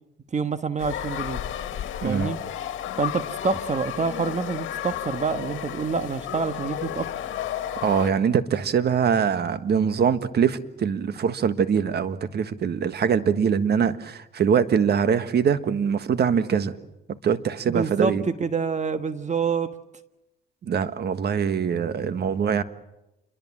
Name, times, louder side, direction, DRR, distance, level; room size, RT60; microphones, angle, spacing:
voice 1, 0.3-1.4 2.0-2.4 3.0-7.1 17.7-19.7, right 5 dB, 35° right, 10 dB, 1.4 m, -27 dB
sound 1, 0.8-8.1, left 11 dB, 80° left, 1.9 m, -32 dB
voice 2, 2.0-2.3 7.8-16.7 17.1-18.2 20.6-22.6, right 7 dB, 55° right, 12 dB, 1.5 m, -23 dB
28.0 x 23.0 x 7.4 m, 0.92 s
cardioid pair, 90°, 20 cm